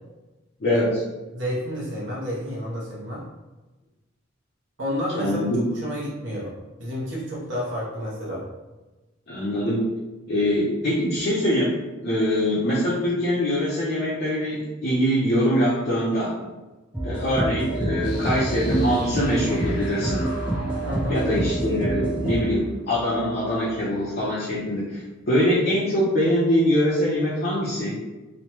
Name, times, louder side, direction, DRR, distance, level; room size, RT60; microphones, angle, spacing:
voice 1, 0.6-1.0 5.2-5.6 9.3-9.8 10.3-11.8 12.0-16.4 17.0-20.3 21.1-28.0, equal, 50° left, -8 dB, 0.5 m, -23 dB
voice 2, 1.3-3.2 4.8-5.4 5.7-6.5 6.8-8.4 20.8-21.2, equal, 60° right, -6 dB, 0.8 m, -30 dB
sound 1, 16.9-22.4, right 1 dB, 5° right, 0.4 m, -27 dB
sound 2, 18.0-24.8, left 1 dB, 90° left, 0.9 m, -37 dB
3.0 x 2.1 x 2.9 m, 1.1 s
head